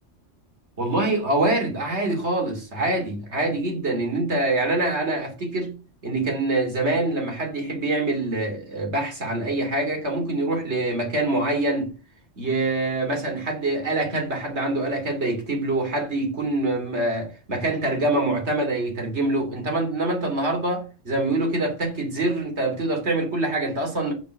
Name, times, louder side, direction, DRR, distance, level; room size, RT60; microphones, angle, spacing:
voice 1, 0.8-5.7 6.0-11.9 12.4-24.1, right 2 dB, 65° right, 3.3 m, -25 dB
6.7 x 6.5 x 6.5 m
omnidirectional pair, 1.2 m